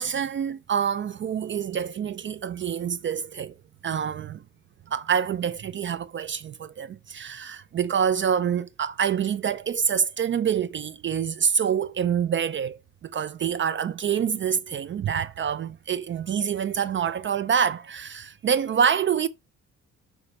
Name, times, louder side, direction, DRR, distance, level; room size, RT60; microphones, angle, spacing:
voice 1, 0.0-3.5 3.8-4.4 4.9-19.3, right 7 dB, 40° right, 0.4 m, -26 dB
6.6 x 3.6 x 4.1 m
cardioid pair, 90°, 30 cm